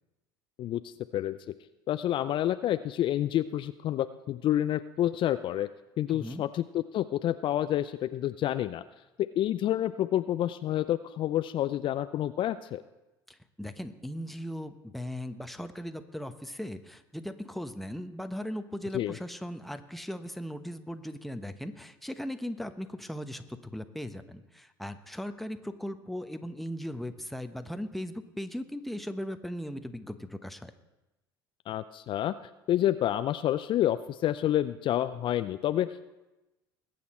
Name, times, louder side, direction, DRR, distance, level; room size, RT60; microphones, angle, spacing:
voice 1, 0.6-1.4 1.9-5.7 6.0-8.8 9.2-12.8 18.9-19.2 31.7-32.3 32.7-36.1, left 12 dB, 45° left, 12 dB, 0.5 m, -29 dB
voice 2, 6.1-6.4 13.3-30.7, equal, ahead, 8 dB, 1.0 m, -38 dB
21.0 x 8.6 x 4.3 m, 1.0 s
hypercardioid pair, 70°, 12 cm